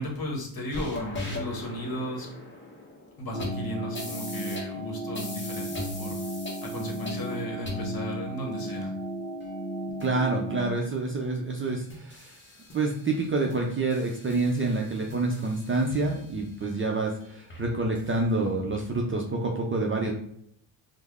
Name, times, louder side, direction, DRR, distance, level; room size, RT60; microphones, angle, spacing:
voice 1, 0.0-2.3 3.2-6.2 6.6-8.9, left 1 dB, 45° left, 0 dB, 1.1 m, -35 dB
sound 1, 0.7-4.7 5.1-7.3 7.6-8.2 9.4-9.5 10.0-10.1 10.6-10.7 11.2-11.3 11.6-13.2 13.5-16.7 17.2-17.3 17.5-18.1 18.5-18.8, left 1 dB, 25° left, 0.8 m, -40 dB
sound 2, 3.3-10.7, right 1 dB, ahead, 1.1 m, -35 dB
voice 2, 10.0-12.3 12.7-20.1, right 3 dB, 30° right, 0 dB, 0.4 m, -27 dB
3.3 x 2.1 x 3.5 m, 0.69 s
cardioid pair, 95°, 49 cm